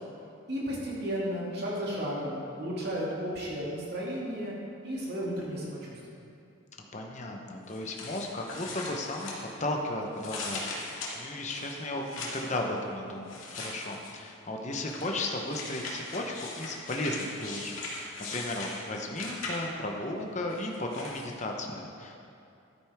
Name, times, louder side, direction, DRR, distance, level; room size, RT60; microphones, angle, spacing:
voice 1, 0.5-4.5 4.8-5.8, equal, 50° right, -5 dB, 2.4 m, -33 dB
voice 2, 6.9-9.3 9.6-22.3, left 1 dB, 35° left, 1 dB, 0.9 m, -35 dB
sound 1, 7.7-9.8 10.2-12.6 13.3-14.3 14.9-19.9 20.5-21.3, left 2 dB, 70° left, 2.0 m, -40 dB
12.5 x 9.4 x 3.5 m, 2.6 s
head